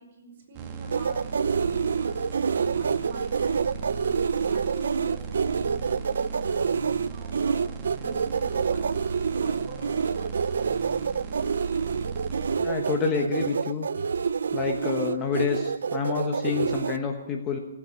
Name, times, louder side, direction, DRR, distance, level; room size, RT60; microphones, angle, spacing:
voice 1, 0.0-7.6 7.9-8.8 9.2-10.4, right 3 dB, 40° right, -1 dB, 5.3 m, -44 dB
sound 1, 0.5-12.6, right 5 dB, 20° right, 1.5 m, -37 dB
sound 2, 0.9-17.0, right 6 dB, 75° right, 0.5 m, -27 dB
voice 2, 12.6-13.9 14.5-17.6, left 6 dB, 15° left, 3 dB, 1.1 m, -28 dB
17.5 x 8.5 x 9.5 m, 1.0 s
hypercardioid pair, 170°, 0 cm